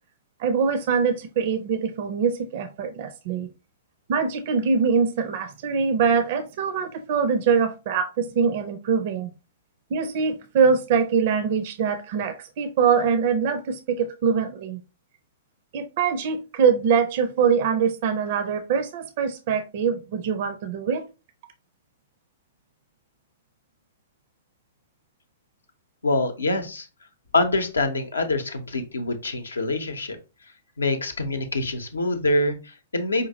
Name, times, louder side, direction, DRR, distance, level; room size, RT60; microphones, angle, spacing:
voice 1, 0.4-3.5 4.1-9.3 9.9-14.8 15.7-21.0, right 6 dB, 45° right, 0.4 m, -23 dB
voice 2, 26.0-26.9 27.3-30.2 30.8-33.3, left 2 dB, 75° left, 0.7 m, -25 dB
5.0 x 2.5 x 2.7 m
figure-of-eight pair, 110°, 0 cm